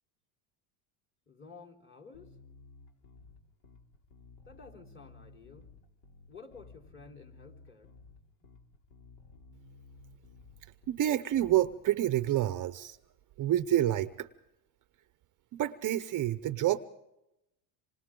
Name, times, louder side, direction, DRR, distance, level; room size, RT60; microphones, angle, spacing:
voice 1, 1.3-2.3 4.5-5.7 6.3-7.9, left 4 dB, 25° left, -1 dB, 4.0 m, -52 dB
Bass guitar, 2.1-11.7, left 3 dB, 65° left, 3.2 m, -55 dB
voice 2, 10.9-13.0 13.4-14.3 15.5-16.8, right 13 dB, 40° right, 12 dB, 0.8 m, -28 dB
28.0 x 26.0 x 3.8 m, 0.88 s
supercardioid pair, 115°, 47 cm